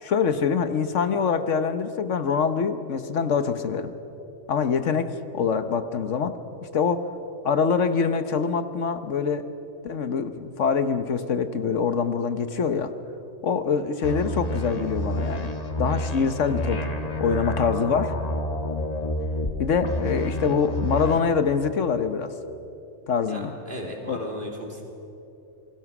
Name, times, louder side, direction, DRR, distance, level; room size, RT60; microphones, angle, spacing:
voice 1, 0.0-3.9 4.5-6.4 6.7-7.1 7.4-9.4 9.8-12.9 13.4-15.5 15.8-16.8 17.2-18.1 19.6-22.3 23.1-23.5 24.1-24.2, left 6 dB, 75° left, 10 dB, 1.3 m, -24 dB
sound 1, 14.0-19.5 19.8-21.2, left 1 dB, 30° left, 1.4 m, -29 dB
voice 2, 23.3-24.8, equal, 45° right, 0 dB, 3.5 m, -36 dB
27.5 x 21.0 x 6.0 m, 2.9 s
omnidirectional pair, 1.3 m